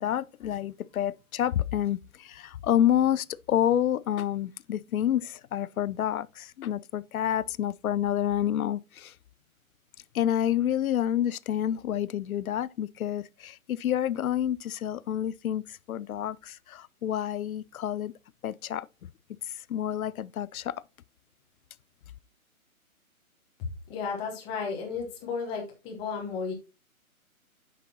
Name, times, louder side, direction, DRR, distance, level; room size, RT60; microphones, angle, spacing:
voice 1, 0.0-9.1 10.1-18.1 18.4-18.9 19.7-20.8, left 11 dB, 75° left, 0.5 m, -28 dB
voice 2, 23.9-26.5, left 5 dB, 10° left, 0.9 m, -33 dB
8.5 x 5.8 x 2.8 m
hypercardioid pair, 150°, 43 cm